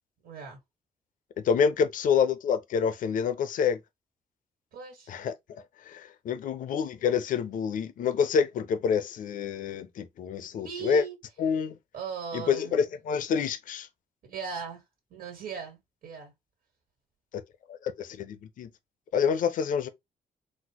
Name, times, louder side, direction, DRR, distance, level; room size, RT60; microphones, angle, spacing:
voice 1, 0.2-0.6 4.7-5.1 10.6-11.2 11.9-12.8 14.2-14.8 15.1-16.3, right 6 dB, 90° right, 1.6 m, -38 dB
voice 2, 1.4-3.8 5.1-5.3 5.9-11.0 11.4-11.8 12.3-13.9 17.3-17.4 17.7-18.7 19.1-19.9, left 6 dB, 70° left, 0.5 m, -27 dB
4.2 x 2.1 x 2.9 m
cardioid pair, 115°, 14 cm